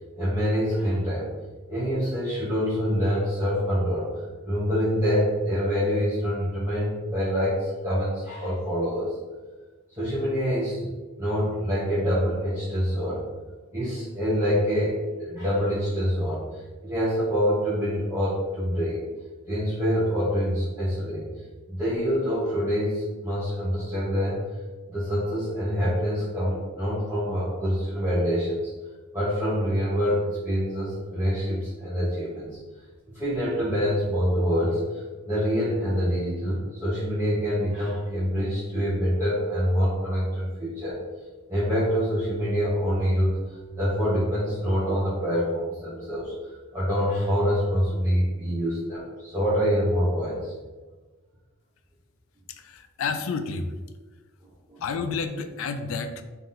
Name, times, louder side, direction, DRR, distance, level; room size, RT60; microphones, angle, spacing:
voice 1, 0.1-1.3 1.7-9.2 10.0-13.2 13.7-19.1 19.5-21.3 21.7-24.4 24.9-28.7 29.1-32.6 33.1-41.0 41.5-46.3 46.7-50.5 54.7-54.8, equal, 15° right, -11 dB, 0.8 m, -26 dB
voice 2, 52.5-53.8 54.8-56.2, left 5 dB, 75° left, 9 dB, 0.3 m, -30 dB
3.7 x 2.6 x 3.6 m, 1.3 s
head